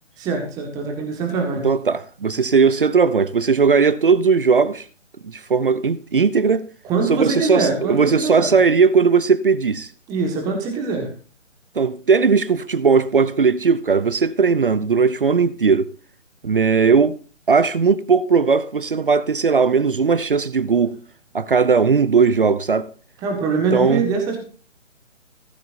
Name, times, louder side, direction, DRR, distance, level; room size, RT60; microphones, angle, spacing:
voice 1, 0.2-1.7 6.8-8.5 10.1-11.1 23.2-24.4, right 4 dB, 10° right, 1.6 m, -23 dB
voice 2, 1.6-4.9 5.2-6.7 7.1-9.9 11.8-15.9 16.4-17.2 17.5-21.0 21.3-22.9 23.7-24.0, right 5 dB, 45° right, 0.6 m, -17 dB
16.0 x 13.5 x 2.6 m
figure-of-eight pair, 140°, 37 cm